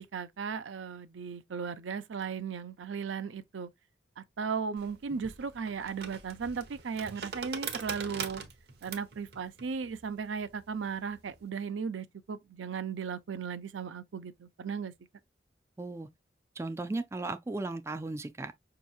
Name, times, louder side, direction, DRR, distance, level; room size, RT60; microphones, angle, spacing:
voice 1, 0.0-3.7 4.2-8.4 8.8-14.9, right 6 dB, 80° right, 0.5 m, -36 dB
sound 1, 4.8-11.4, right 6 dB, 60° right, 0.8 m, -43 dB
voice 2, 15.8-16.1 16.6-18.5, right 2 dB, 15° right, 0.3 m, -36 dB
5.4 x 2.9 x 2.3 m
head